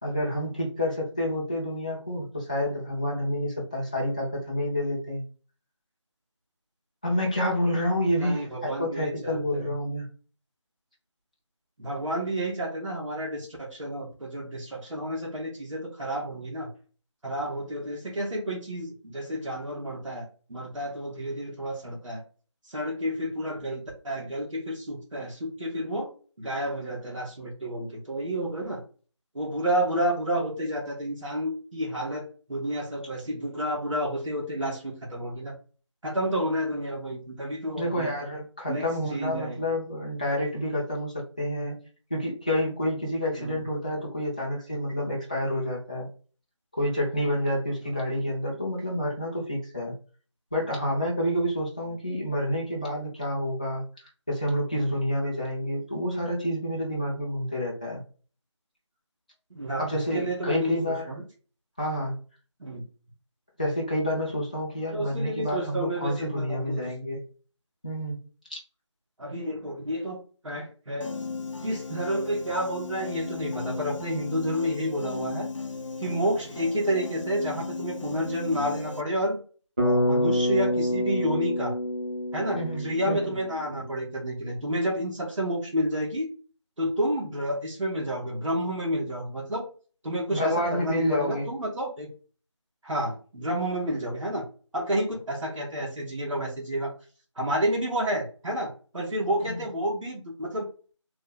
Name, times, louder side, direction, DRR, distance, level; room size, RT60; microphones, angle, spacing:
voice 1, 0.0-5.2 7.0-10.1 37.8-41.8 42.1-46.1 46.8-50.0 50.5-53.8 54.3-58.0 59.8-61.1 61.8-62.2 63.6-67.2 67.8-68.2 68.5-68.6 82.5-83.3 90.3-91.5 99.4-99.6, equal, 15° left, -5 dB, 0.6 m, -29 dB
voice 2, 8.2-9.7 11.8-16.7 17.2-22.2 22.6-26.1 26.4-28.8 29.3-35.5 36.0-38.1 38.7-39.7 43.4-43.6 59.5-61.2 62.6-62.8 64.9-66.8 69.2-70.2 70.4-71.1 71.6-75.5 76.0-79.4 79.8-81.7 82.3-86.3 86.8-89.6 90.0-92.1 92.8-94.4 94.7-96.9 97.4-100.7, equal, 85° right, -2 dB, 1.2 m, -30 dB
Piano, 71.0-79.0, left 4 dB, 85° left, 0.5 m, -36 dB
Bass guitar, 79.8-83.9, equal, 20° right, 0.8 m, -27 dB
3.2 x 2.1 x 3.7 m, 0.38 s
figure-of-eight pair, 170°, 16 cm